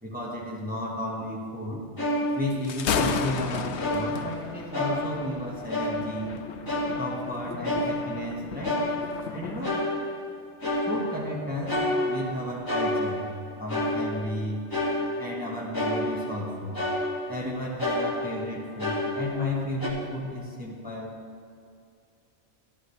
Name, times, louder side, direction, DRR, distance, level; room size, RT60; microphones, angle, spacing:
voice 1, 0.0-1.8 2.3-6.3 7.0-8.8 9.3-9.8 10.8-13.3 13.6-14.6 15.2-16.8 17.3-21.1, left 1 dB, 10° right, -4 dB, 1.5 m, -33 dB
sound 1, 2.0-3.5 3.8-4.5 4.7-5.4 5.7-6.3 6.7-8.3 8.6-9.4 9.6-10.3 10.6-11.3 11.7-13.4 13.7-14.4 14.7-15.4 15.7-16.5 16.7-17.5 17.8-19.5 19.8-19.9, left 1 dB, 20° left, 1.8 m, -29 dB
Thunder, 2.5-9.7, left 7 dB, 80° left, 0.9 m, -34 dB
13.0 x 11.0 x 3.2 m, 2.4 s
omnidirectional pair, 1.1 m